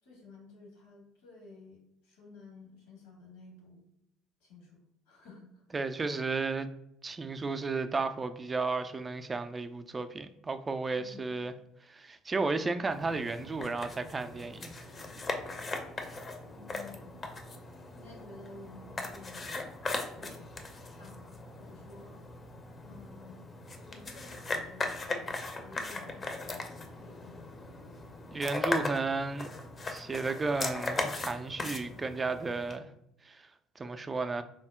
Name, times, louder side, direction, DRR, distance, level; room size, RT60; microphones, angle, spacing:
voice 1, 0.0-3.9 4.4-5.9 10.9-11.3 16.4-17.2 17.9-19.7 20.1-20.5 21.0-22.2 22.8-23.4 23.8-27.6, left 3 dB, 75° left, 1.2 m, -53 dB
voice 2, 5.7-6.7 7.0-11.5 11.9-14.7 28.3-29.5 29.9-32.9 33.2-33.5 33.8-34.4, right 3 dB, 25° right, 0.3 m, -33 dB
sound 1, 12.9-32.8, left 3 dB, 30° left, 0.6 m, -39 dB
3.7 x 2.0 x 3.5 m
figure-of-eight pair, 55°, 0 cm